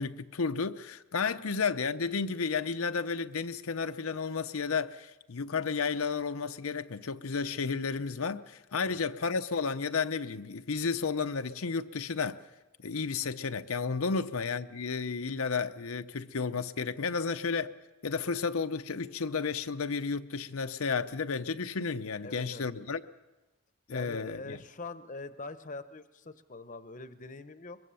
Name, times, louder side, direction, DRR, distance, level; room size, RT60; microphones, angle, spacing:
voice 1, 0.0-12.4 12.8-17.7 18.0-23.0 23.9-24.6, left 5 dB, 85° left, 0.7 m, -32 dB
voice 2, 22.2-22.7 23.9-27.8, left 3 dB, 35° left, 0.9 m, -43 dB
23.0 x 22.0 x 7.0 m
head